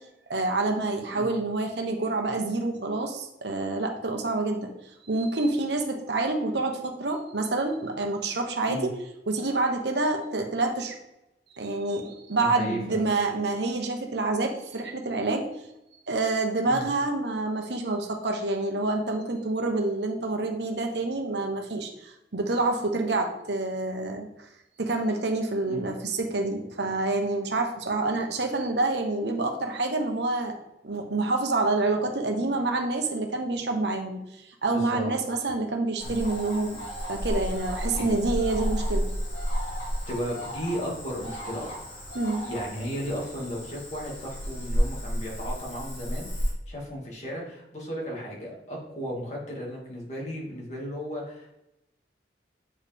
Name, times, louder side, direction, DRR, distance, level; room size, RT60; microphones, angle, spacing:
voice 1, 0.3-4.7 5.0-8.9 9.3-10.9 11.5-15.5 16.1-24.3 24.8-30.5 30.8-36.8 37.1-39.0 42.1-42.5, right 2 dB, 75° right, 3 dB, 1.1 m, -27 dB
voice 2, 12.4-13.0 16.7-16.8 25.7-25.8 34.7-35.2 36.0-36.1 37.9-38.1 40.1-41.8 42.4-51.5, equal, 40° left, -3 dB, 2.2 m, -35 dB
Cricket / Frog, 36.0-46.5, equal, 80° left, 2.1 m, -32 dB
8.5 x 4.8 x 3.5 m, 0.89 s
head